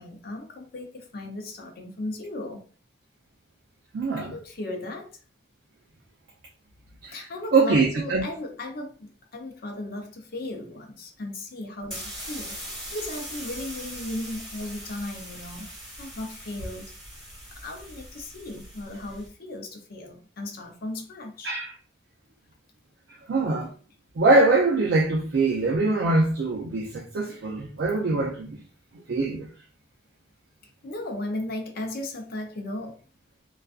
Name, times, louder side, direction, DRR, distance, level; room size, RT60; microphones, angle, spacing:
voice 1, 0.0-2.7 4.2-5.1 7.1-12.5 12.9-15.7 16.0-16.9 17.6-21.5 30.8-33.0, left 1 dB, 55° left, 0.6 m, -36 dB
voice 2, 3.9-4.4 7.0-7.2 7.5-8.2 21.4-21.7 23.3-23.7 24.2-28.6 29.1-29.5, right 3 dB, 65° right, 0.4 m, -23 dB
sound 1, 11.8-19.3, equal, 5° left, 1.2 m, -40 dB
2.4 x 2.3 x 2.3 m
head